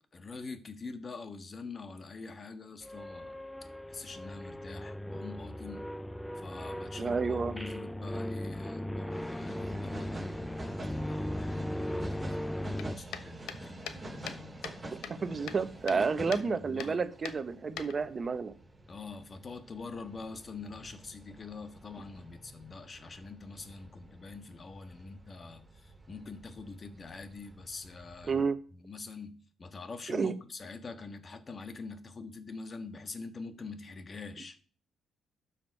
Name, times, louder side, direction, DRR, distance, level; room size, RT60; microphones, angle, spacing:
voice 1, 0.1-3.4 3.9-5.9 6.3-15.3 15.9-17.0 18.9-28.4 28.7-34.6, left 4 dB, 35° left, 1.5 m, -45 dB
sound 1, 2.8-13.0, left 1 dB, 5° left, 0.4 m, -37 dB
voice 2, 7.0-7.5 15.1-18.5 28.3-28.6 30.1-30.3, right 5 dB, 40° right, 1.1 m, -30 dB
sound 2, 9.1-28.4, right 2 dB, 15° right, 4.1 m, -49 dB
sound 3, 12.8-14.8 15.0-16.0 16.3-16.5 16.8-16.9 17.3-18.3, left 9 dB, 80° left, 1.0 m, -42 dB
12.5 x 7.4 x 4.7 m
cardioid pair, 90°, 0 cm